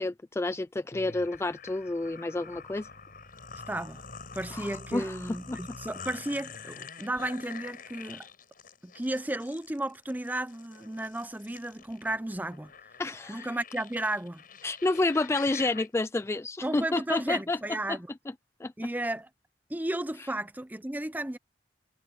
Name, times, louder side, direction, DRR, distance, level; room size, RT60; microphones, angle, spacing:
voice 1, 0.0-2.9 4.5-5.6 13.0-13.5 14.6-17.6 17.9-18.0 18.6-18.7, left 2 dB, 15° left, 0.3 m, -29 dB
sound 1, 0.9-15.9, left 5 dB, 50° left, 6.8 m, -46 dB
voice 2, 3.7-4.0 4.3-8.3 8.8-12.7 13.3-14.4 16.6-18.1 18.8-19.3 19.7-21.4, right 1 dB, 10° right, 0.7 m, -33 dB
head